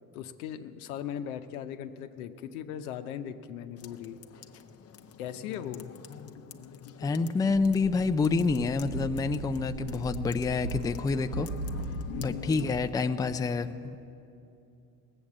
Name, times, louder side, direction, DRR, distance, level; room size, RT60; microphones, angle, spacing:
voice 1, 0.1-4.2 5.2-6.0 12.1-12.6, left 9 dB, 80° left, 9 dB, 0.8 m, -39 dB
sound 1, 3.8-12.9, left 7 dB, 35° left, 0.8 m, -48 dB
voice 2, 7.0-11.5 12.2-14.1, left 4 dB, 10° left, 9 dB, 0.4 m, -28 dB
sound 2, 7.5-12.9, right 1 dB, 50° right, 1.2 m, -38 dB
18.5 x 7.9 x 7.3 m, 2.7 s
hypercardioid pair, 75°, 42 cm